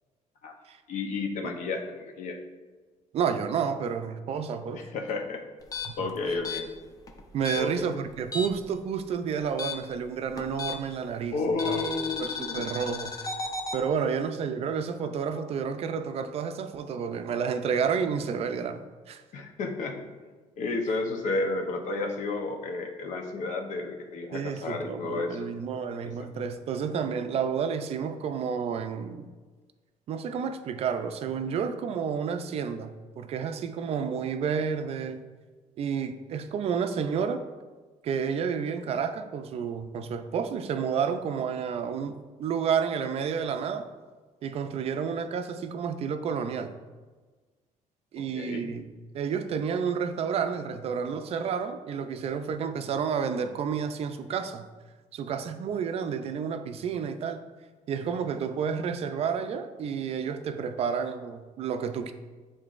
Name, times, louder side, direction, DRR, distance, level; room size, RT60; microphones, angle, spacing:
voice 1, 0.9-2.4 4.7-5.4 6.0-6.7 7.5-7.9 11.3-12.7 19.3-20.1 20.6-25.5 26.0-26.3 48.3-48.7, left 3 dB, 65° left, 3 dB, 0.8 m, -32 dB
voice 2, 3.1-4.8 5.9-6.0 7.3-11.8 12.2-19.2 24.3-29.2 30.1-35.2 35.8-37.4 38.0-43.9 44.4-46.7 48.1-48.9 49.1-54.7 55.1-57.4 57.9-62.1, right 6 dB, 50° right, 9 dB, 0.4 m, -30 dB
sound 1, 5.6-8.7 9.0-11.0 11.6-13.8, left 4 dB, 25° left, 0.5 m, -35 dB
10.0 x 3.8 x 2.5 m, 1.4 s
cardioid pair, 170°, 14 cm